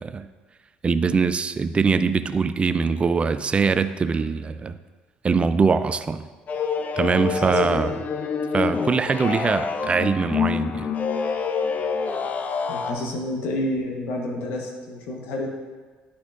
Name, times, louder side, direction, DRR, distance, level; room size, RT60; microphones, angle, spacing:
voice 1, 0.8-4.7 5.2-6.2 7.0-7.9 8.5-10.9, right 5 dB, 30° right, 11 dB, 0.3 m, -22 dB
sound 1, 6.5-12.9, left 5 dB, 45° left, 0.5 m, -26 dB
voice 2, 7.0-7.9 12.7-15.5, left 1 dB, 75° left, 1 dB, 1.0 m, -30 dB
9.8 x 4.3 x 2.4 m, 1.4 s
supercardioid pair, 65°, 4 cm